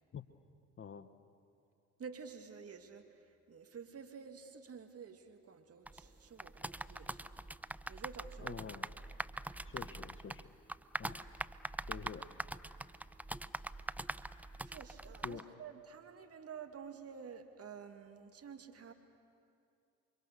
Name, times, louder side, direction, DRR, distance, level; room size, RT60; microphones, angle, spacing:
voice 1, 0.8-1.1 8.4-8.9 9.6-10.5 11.0-11.2 11.9-12.3 15.2-15.5, left 7 dB, 35° left, 12 dB, 1.2 m, -47 dB
voice 2, 2.0-7.3 7.9-8.6 9.7-9.8 14.6-18.9, right 6 dB, 45° right, 6 dB, 2.3 m, -50 dB
sound 1, 5.9-15.4, right 1 dB, 5° right, 0.6 m, -44 dB
29.0 x 24.5 x 6.8 m, 2.5 s
hypercardioid pair, 55°, 35 cm